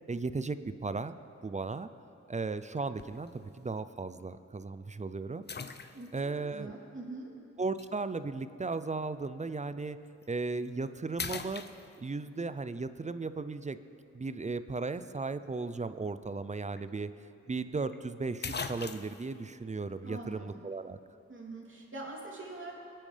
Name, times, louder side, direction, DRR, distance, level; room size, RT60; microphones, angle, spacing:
voice 1, 0.1-1.2 1.4-1.9 2.3-5.4 5.8-6.7 7.6-10.0 10.3-11.7 12.0-13.8 14.1-21.0, right 3 dB, 25° right, 13 dB, 0.5 m, -36 dB
sound 1, 3.0-3.3 4.0-4.1 5.5-6.3 7.8-7.9 10.1-10.3 10.7-10.9 11.2-12.3 16.4-16.5 16.8-16.9 17.9-18.0 18.4-19.3, left 5 dB, 35° left, 0.6 m, -40 dB
voice 2, 5.9-7.3 20.0-20.5 21.3-22.7, right 2 dB, 40° right, -3 dB, 3.0 m, -44 dB
20.0 x 8.8 x 3.4 m, 2.6 s
cardioid pair, 45°, 30 cm